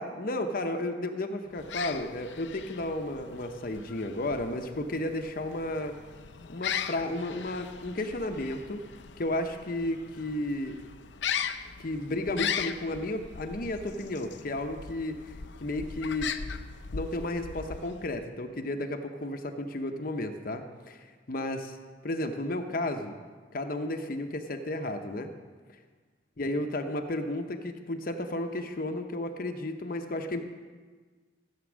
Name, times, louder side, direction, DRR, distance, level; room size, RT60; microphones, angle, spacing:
voice 1, 0.0-6.0 6.5-8.8 9.2-10.8 11.8-15.3 15.6-16.3 16.9-21.8 22.0-23.1 23.5-25.3 26.4-30.4, left 1 dB, 55° left, 5 dB, 0.8 m, -33 dB
sound 1, 1.5-18.3, left 7 dB, 85° left, 0.6 m, -39 dB
14.5 x 8.3 x 6.2 m, 1.5 s
head